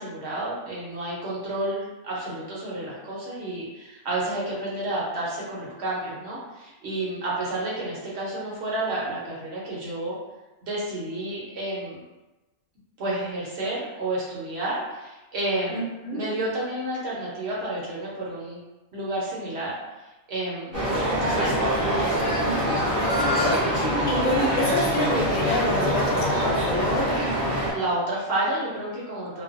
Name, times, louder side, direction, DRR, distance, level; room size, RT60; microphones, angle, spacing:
voice 1, 0.0-10.2 10.6-12.0 13.0-15.8 16.1-18.6 18.9-19.7 20.3-20.8 21.3-21.6 21.8-22.4 27.7-29.4, right 1 dB, 60° right, -5 dB, 0.9 m, -30 dB
voice 2, 15.7-16.3 22.3-27.2, left 1 dB, 80° left, -2 dB, 1.0 m, -28 dB
sound 1, 20.7-27.7, equal, 15° right, 0.5 m, -24 dB
2.5 x 2.2 x 2.4 m, 1.1 s
omnidirectional pair, 1.4 m